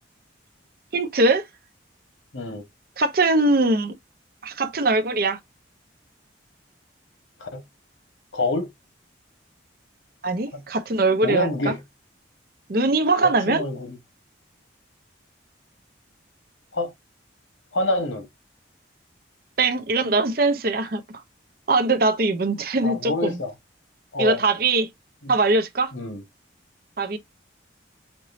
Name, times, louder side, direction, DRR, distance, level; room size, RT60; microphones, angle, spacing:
voice 1, 0.9-1.4 3.0-3.9 4.4-5.4 10.2-11.7 12.7-13.6 19.6-21.0 21.7-23.4 24.2-24.9 25.3-25.9 27.0-27.2, right 2 dB, 50° right, 0.7 m, -21 dB
voice 2, 2.3-2.6 7.4-7.6 8.3-8.7 10.5-10.6 11.2-11.8 13.2-14.0 16.7-16.9 17.7-18.3 22.8-23.5 24.1-24.4 25.2-25.3 25.9-26.2, left 2 dB, 85° left, 1.5 m, -26 dB
5.2 x 3.1 x 2.6 m
head